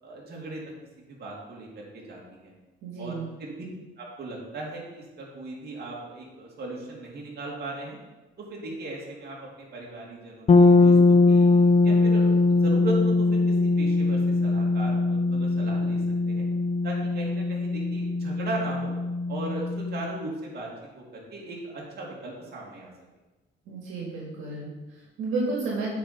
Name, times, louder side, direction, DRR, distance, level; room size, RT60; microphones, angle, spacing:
voice 1, 0.0-0.6 1.0-2.5 3.0-3.6 4.0-8.0 8.4-11.5 11.8-16.5 16.8-18.9 19.3-22.9, right 2 dB, 55° right, -3 dB, 2.3 m, -37 dB
voice 2, 2.8-3.3 23.6-25.9, right 3 dB, 85° right, -3 dB, 1.8 m, -32 dB
sound 1, 10.5-20.3, left 3 dB, 35° left, 0.6 m, -21 dB
8.7 x 4.3 x 5.1 m, 1.1 s
cardioid pair, 90°, 20 cm